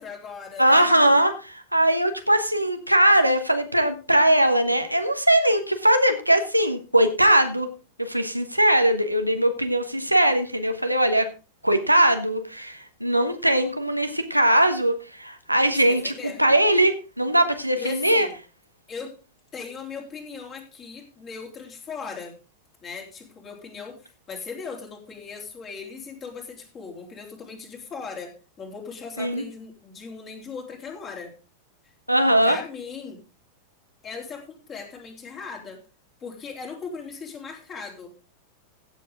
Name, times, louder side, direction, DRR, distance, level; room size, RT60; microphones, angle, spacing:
voice 1, 0.0-1.2 15.7-16.4 17.8-18.4 18.9-19.2 19.5-22.3 22.8-24.0 24.3-31.3 32.4-33.2 34.0-35.8 36.2-38.1, left 5 dB, 25° left, 1 dB, 3.5 m, -38 dB
voice 2, 0.6-7.7 8.0-11.3 11.6-18.3 29.2-29.4 32.1-32.6, right 1 dB, 90° right, 7 dB, 1.2 m, -20 dB
16.0 x 7.3 x 3.6 m, 0.32 s
figure-of-eight pair, 90°, 0 cm